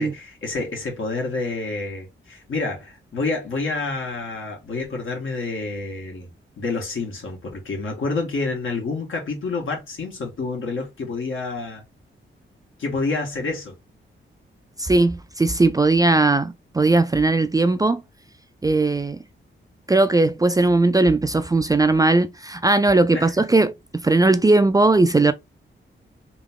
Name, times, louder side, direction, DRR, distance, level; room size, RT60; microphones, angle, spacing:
voice 1, 0.0-6.3 6.6-11.8 12.8-13.8 23.1-23.3, left 3 dB, 75° left, 1.8 m, -28 dB
voice 2, 14.8-18.0 18.6-19.2 19.9-23.7 24.0-25.3, right 2 dB, 20° right, 0.3 m, -18 dB
3.6 x 2.9 x 3.6 m
wide cardioid pair, 125°, 21 cm